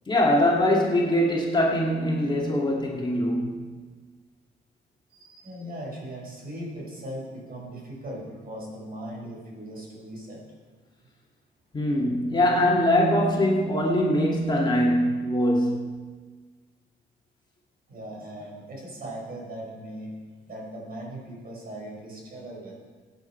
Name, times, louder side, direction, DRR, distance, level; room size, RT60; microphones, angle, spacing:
voice 1, 0.1-3.7 11.7-16.0, left 1 dB, 20° left, -2 dB, 2.4 m, -22 dB
voice 2, 5.1-10.6 17.9-20.1 20.5-22.8, right 1 dB, 50° right, -2 dB, 4.9 m, -39 dB
16.5 x 9.3 x 4.5 m, 1.4 s
cardioid pair, 90°, 20 cm